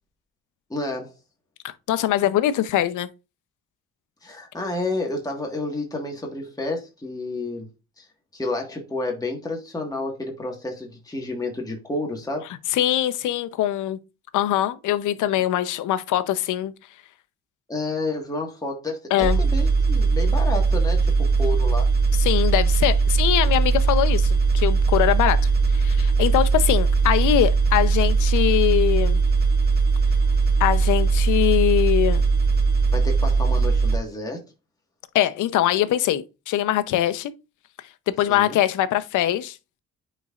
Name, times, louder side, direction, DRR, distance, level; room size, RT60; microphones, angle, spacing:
voice 1, 0.7-1.1 4.2-7.7 8.0-8.1 8.3-12.5 17.7-21.1 21.4-21.9 32.9-34.4 38.3-38.6, left 2 dB, 10° left, 1.6 m, -30 dB
voice 2, 1.9-3.1 12.7-14.0 14.3-16.7 19.1-19.4 22.2-25.5 25.7-29.2 30.6-32.2 35.1-37.3 38.2-39.6, left 12 dB, 80° left, 0.7 m, -22 dB
sound 1, 19.2-34.0, right 4 dB, 35° right, 1.7 m, -20 dB
9.1 x 4.2 x 2.4 m
cardioid pair, 90°, 30 cm